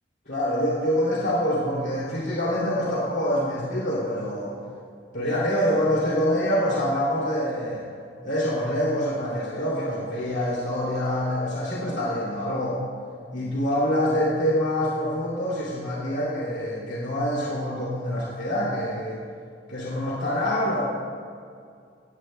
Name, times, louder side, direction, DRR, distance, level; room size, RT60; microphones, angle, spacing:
voice 1, 0.3-4.5 5.1-7.8 8.2-12.8 13.3-19.2 19.7-20.8, equal, 85° left, -6 dB, 2.6 m, -25 dB
18.0 x 17.0 x 2.2 m, 2.3 s
head